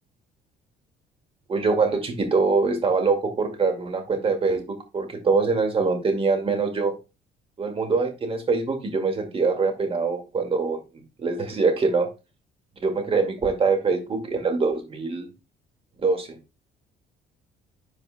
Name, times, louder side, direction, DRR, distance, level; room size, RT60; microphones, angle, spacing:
voice 1, 1.5-6.9 7.6-10.8 11.2-12.1 12.8-15.3 16.0-16.3, right 4 dB, 35° right, 4 dB, 2.1 m, -23 dB
11.5 x 4.7 x 2.2 m, 0.28 s
cardioid pair, 110°, 17 cm